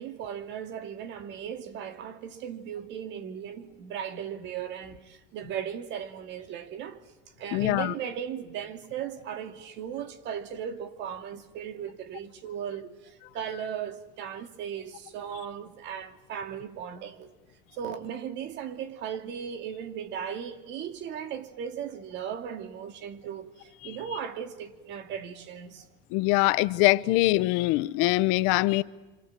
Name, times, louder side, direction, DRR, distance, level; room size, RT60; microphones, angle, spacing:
voice 1, 0.0-7.0 7.4-17.3 17.7-25.9 27.0-27.1, right 8 dB, 60° right, 2.6 m, -37 dB
voice 2, 7.5-7.9 26.1-28.8, left 19 dB, 85° left, 0.9 m, -23 dB
27.0 x 26.5 x 7.6 m
cardioid pair, 150°, 21 cm